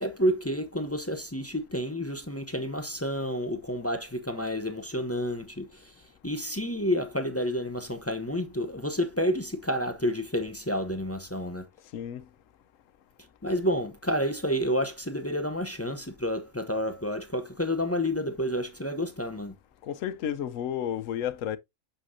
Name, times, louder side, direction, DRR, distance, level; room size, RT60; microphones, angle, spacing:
voice 1, 0.0-6.0 6.2-11.7 13.4-19.5, equal, 15° left, 0.5 m, -30 dB
voice 2, 11.9-12.3 19.8-21.6, left 9 dB, 75° left, 1.0 m, -32 dB
6.7 x 6.1 x 2.6 m
omnidirectional pair, 1.4 m